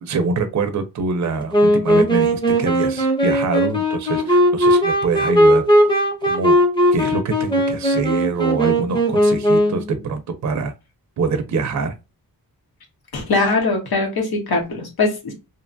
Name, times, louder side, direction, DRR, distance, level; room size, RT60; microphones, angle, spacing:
voice 1, 0.0-5.7 6.3-6.6 6.9-10.7 11.2-11.9, right 4 dB, 50° right, 0.5 m, -24 dB
Wind instrument woodwind instrument, 1.5-9.9, equal, 15° left, 0.7 m, -17 dB
voice 2, 13.1-15.3, left 3 dB, 80° left, 0.9 m, -21 dB
2.7 x 2.2 x 2.5 m
wide cardioid pair, 155°, 37 cm